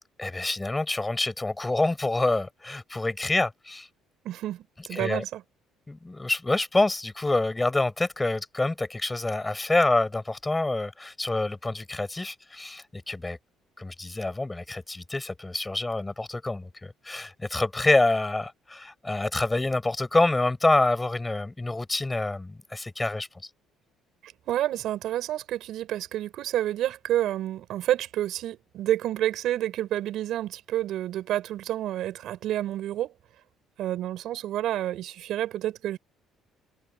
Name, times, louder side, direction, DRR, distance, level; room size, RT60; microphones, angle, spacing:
voice 1, 0.2-3.9 4.9-5.2 5.9-13.4 13.8-23.3, left 2 dB, 15° left, 7.0 m, -27 dB
voice 2, 4.2-5.4 24.2-33.1 33.8-36.0, right 13 dB, 70° right, 7.2 m, -29 dB
cardioid pair, 105°, 0 cm